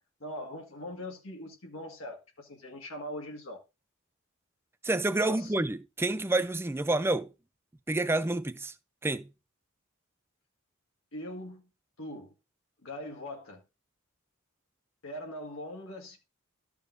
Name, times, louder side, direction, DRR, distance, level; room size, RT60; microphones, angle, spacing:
voice 1, 0.2-3.6 5.1-5.5 11.1-11.7 12.0-12.3 12.8-13.6 15.0-16.2, left 1 dB, 65° left, 1.8 m, -41 dB
voice 2, 4.8-7.3 7.9-8.7 9.0-9.3, right 2 dB, 10° right, 0.5 m, -28 dB
13.5 x 6.9 x 2.7 m
head